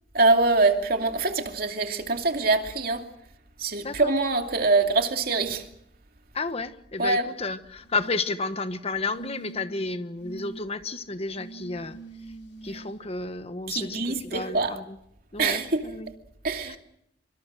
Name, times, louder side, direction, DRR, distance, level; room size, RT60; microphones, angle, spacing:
voice 1, 0.1-3.0 3.6-5.6 7.0-7.2 13.7-14.7 15.4-15.8 16.4-16.8, right 3 dB, 55° right, 2.6 m, -24 dB
voice 2, 3.8-4.1 6.3-12.0 12.6-15.0 15.3-16.1 16.6-16.8, left 3 dB, 35° left, 1.2 m, -32 dB
sound 1, 7.8-8.4 9.1-9.8 10.2-10.6 11.3-12.9 14.2-14.3, right 3 dB, 80° left, 7.6 m, -44 dB
25.0 x 24.5 x 6.4 m
head